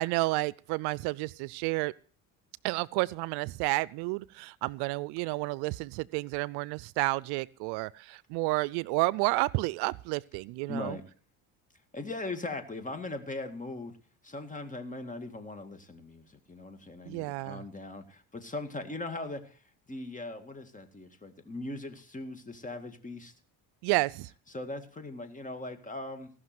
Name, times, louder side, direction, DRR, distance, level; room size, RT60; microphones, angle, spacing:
voice 1, 0.0-1.9 2.6-11.0 17.1-17.6 23.8-24.3, right 22 dB, 75° right, 22 dB, 0.5 m, -30 dB
voice 2, 10.7-11.0 11.9-14.0 14.2-19.6 19.9-23.3 24.5-26.3, left 2 dB, 20° left, 8 dB, 2.1 m, -39 dB
17.0 x 6.1 x 7.7 m, 0.42 s
supercardioid pair, 90°, 39 cm